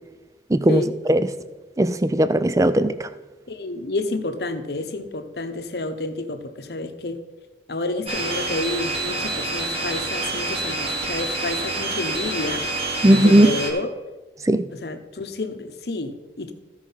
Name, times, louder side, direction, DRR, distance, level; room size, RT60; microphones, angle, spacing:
voice 1, 0.5-0.8 1.1-1.3 1.8-3.1 13.0-13.5 14.5-14.7, right 1 dB, 20° right, 0.4 m, -17 dB
voice 2, 3.5-7.2 7.7-12.6 13.1-13.9 14.7-16.5, left 2 dB, 60° left, 0.9 m, -29 dB
sound 1, 8.1-13.7, right 2 dB, 35° right, 1.8 m, -27 dB
14.5 x 4.9 x 5.6 m
head